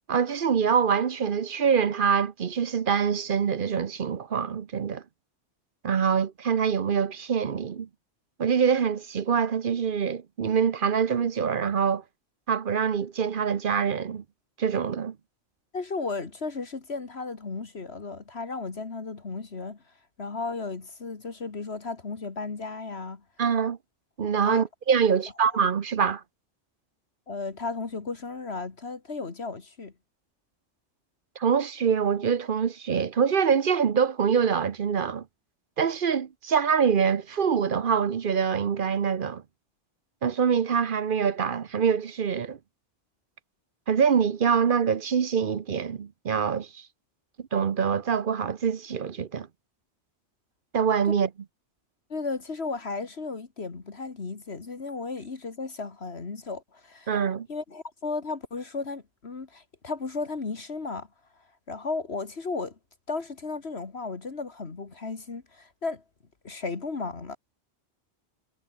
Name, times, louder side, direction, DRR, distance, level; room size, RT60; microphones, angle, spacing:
voice 1, 0.1-5.0 5.8-7.9 8.4-12.0 12.5-14.2 14.6-15.1 23.4-23.8 24.2-26.2 31.4-35.2 35.8-39.4 40.2-42.6 43.9-46.8 47.5-49.5 50.7-51.3 57.1-57.5, right 7 dB, 50° right, 1.0 m, -25 dB
voice 2, 15.7-19.8 20.2-23.2 24.4-24.6 27.3-29.9 52.1-57.1 57.5-61.1 61.7-62.8 63.1-66.0 66.4-67.4, left 4 dB, 60° left, 2.2 m, -34 dB
omnidirectional pair, 1.2 m